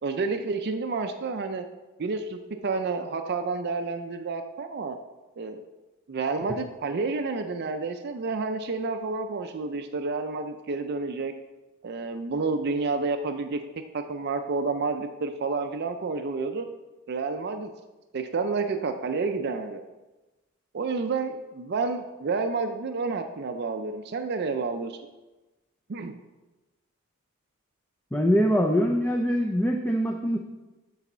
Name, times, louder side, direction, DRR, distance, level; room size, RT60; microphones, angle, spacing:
voice 1, 0.0-1.7 2.0-5.0 5.4-5.6 6.1-11.3 11.8-13.6 13.9-16.7 17.1-17.7 18.1-19.8 20.7-25.0 25.9-26.2, right 4 dB, 50° right, 7 dB, 0.4 m, -30 dB
voice 2, 28.1-30.4, equal, 10° left, 1 dB, 0.4 m, -23 dB
8.3 x 4.1 x 5.5 m, 1.1 s
head